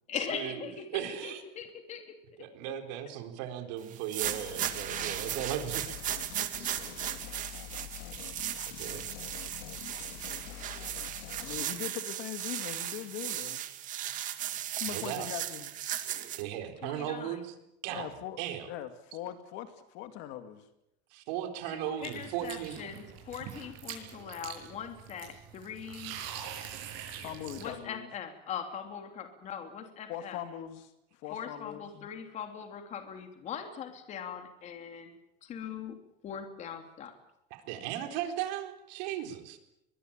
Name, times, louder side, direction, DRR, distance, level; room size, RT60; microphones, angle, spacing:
voice 1, 0.1-2.1 4.8-5.2 16.8-17.4 21.7-26.2 27.6-30.4 31.3-35.1 35.4-36.0 36.2-37.1, left 7 dB, 35° left, 6 dB, 3.1 m, -41 dB
voice 2, 0.9-1.4 2.4-5.8 6.6-6.8 8.8-9.0 14.9-15.3 16.4-17.5 17.8-18.1 18.4-18.7 21.1-22.8 37.5-39.6, right 11 dB, 90° right, 6 dB, 4.2 m, -36 dB
sound 1, 3.9-16.4, right 12 dB, 40° right, 2.0 m, -36 dB
sound 2, 4.2-11.6, left 14 dB, 80° left, 2.3 m, -45 dB
voice 3, 11.4-13.7 14.8-15.7 16.1-16.2 17.9-18.4 18.7-20.7 27.2-28.1 30.1-32.1, left 11 dB, 60° left, 9 dB, 2.4 m, -41 dB
sound 3, 22.0-27.8, right 9 dB, 70° right, 7.8 m, -44 dB
23.0 x 22.5 x 8.9 m, 0.84 s
cardioid pair, 170°, 21 cm